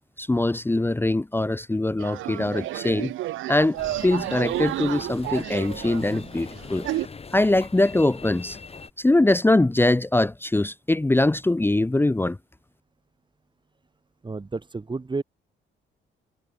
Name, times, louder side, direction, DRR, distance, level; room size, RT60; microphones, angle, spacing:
voice 1, 0.2-3.1 3.5-3.8 4.0-6.9 7.3-8.6 9.0-12.4, left 2 dB, 10° left, 0.8 m, -22 dB
sound 1, 2.0-7.1, right 16 dB, 80° right, 0.6 m, -31 dB
sound 2, 3.8-8.9, left 5 dB, 30° left, 2.0 m, -41 dB
voice 2, 14.2-15.2, right 3 dB, 25° right, 2.7 m, -31 dB
cardioid pair, 90°, 20 cm